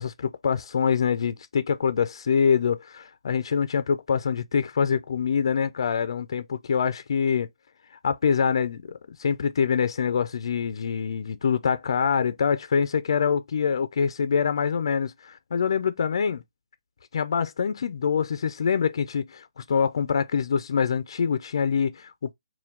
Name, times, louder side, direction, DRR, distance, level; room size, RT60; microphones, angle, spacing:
voice 1, 0.0-7.5 8.0-16.4 17.1-22.3, left 6 dB, 50° left, 0.4 m, -25 dB
4.5 x 2.2 x 3.6 m
hypercardioid pair, 175°, 3 cm